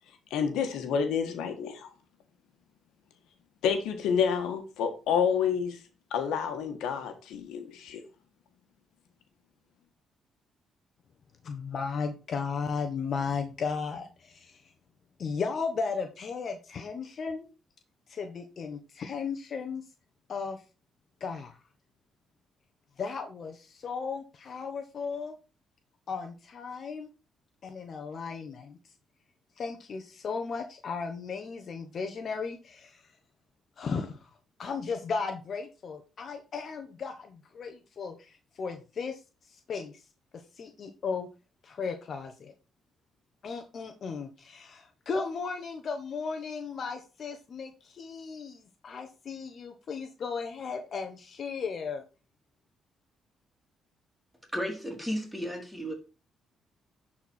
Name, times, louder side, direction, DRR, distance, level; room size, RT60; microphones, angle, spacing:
voice 1, 0.3-1.9 3.6-5.8 6.1-8.0, left 7 dB, 90° left, 6 dB, 1.5 m, -29 dB
voice 2, 11.4-14.7 15.2-17.5 18.1-19.8 20.3-20.6 21.2-21.5 23.0-25.3 26.1-27.1 27.6-28.8 29.6-33.0 33.8-34.3 34.6-39.2 39.5-39.9 40.6-41.3 41.6-42.5 43.4-52.0, left 5 dB, 55° left, 5 dB, 1.1 m, -35 dB
voice 3, 54.5-55.9, equal, ahead, 2 dB, 3.2 m, -33 dB
11.0 x 4.4 x 4.2 m, 0.32 s
cardioid pair, 90°, 0 cm